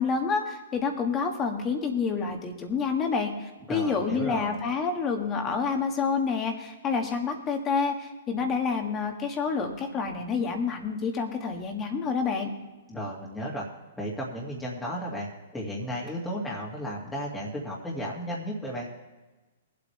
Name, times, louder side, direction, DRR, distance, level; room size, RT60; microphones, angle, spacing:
voice 1, 0.0-12.5, left 5 dB, 25° left, 3 dB, 1.8 m, -28 dB
voice 2, 3.7-4.6 12.9-13.7 14.0-18.9, equal, 5° left, -5 dB, 2.2 m, -34 dB
21.0 x 8.1 x 3.3 m, 1.2 s
hypercardioid pair, 130°, 0 cm